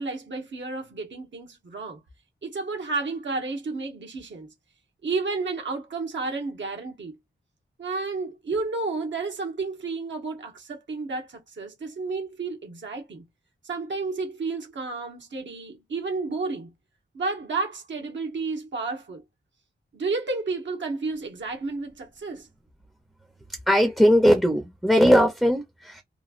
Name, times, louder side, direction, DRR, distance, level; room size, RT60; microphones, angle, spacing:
voice 1, 0.0-2.0 2.4-4.5 5.0-7.2 7.8-13.2 13.6-16.7 17.1-19.2 19.9-22.5, right 3 dB, 75° right, 1.1 m, -31 dB
voice 2, 23.7-26.0, equal, ahead, 0.6 m, -19 dB
3.0 x 2.3 x 2.4 m
wide cardioid pair, 130°, 19 cm